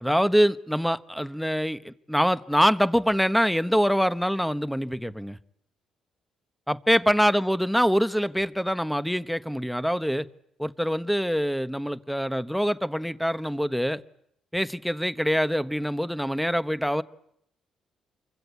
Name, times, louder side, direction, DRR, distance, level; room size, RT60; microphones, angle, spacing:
voice 1, 0.0-5.4 6.7-10.3 10.6-14.0 14.5-17.0, equal, ahead, 1.2 m, -24 dB
29.0 x 24.5 x 8.4 m
cardioid pair, 90°, 0 cm